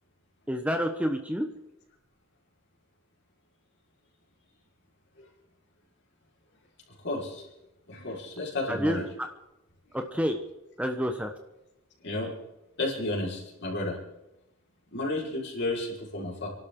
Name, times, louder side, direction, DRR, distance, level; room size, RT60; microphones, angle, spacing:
voice 1, 0.5-1.5 8.7-9.1 9.9-10.4 10.8-11.3, equal, 5° right, 5 dB, 1.0 m, -28 dB
voice 2, 7.0-7.5 7.9-9.0 12.0-12.3 12.8-14.0 14.9-16.5, left 2 dB, 55° left, -2 dB, 4.7 m, -32 dB
28.5 x 12.0 x 3.8 m, 0.91 s
head